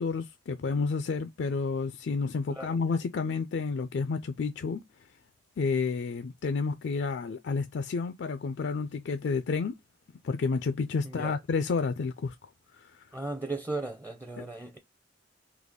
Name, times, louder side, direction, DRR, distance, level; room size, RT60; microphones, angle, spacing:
voice 1, 0.0-4.8 5.6-9.8 10.2-12.4 12.8-13.0 14.4-14.5, left 4 dB, 65° left, 0.4 m, -30 dB
voice 2, 11.0-11.4 13.1-14.8, right 2 dB, 15° right, 0.5 m, -36 dB
4.0 x 2.8 x 3.6 m
head